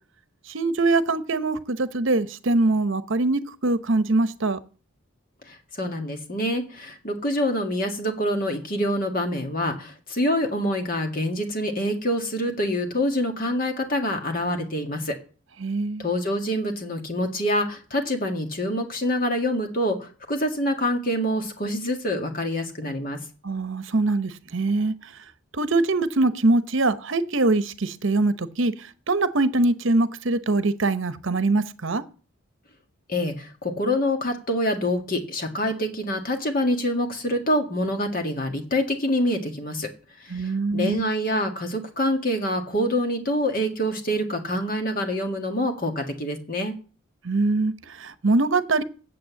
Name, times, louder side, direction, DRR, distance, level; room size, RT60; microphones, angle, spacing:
voice 1, 0.5-4.6 15.6-16.0 23.4-24.9 25.6-28.7 29.1-32.0 40.3-41.0 47.2-48.8, right 2 dB, 60° right, 0.9 m, -23 dB
voice 2, 5.5-15.2 16.0-23.2 33.1-39.9 40.2-46.7, equal, 40° left, 1.9 m, -26 dB
9.2 x 7.8 x 7.5 m
head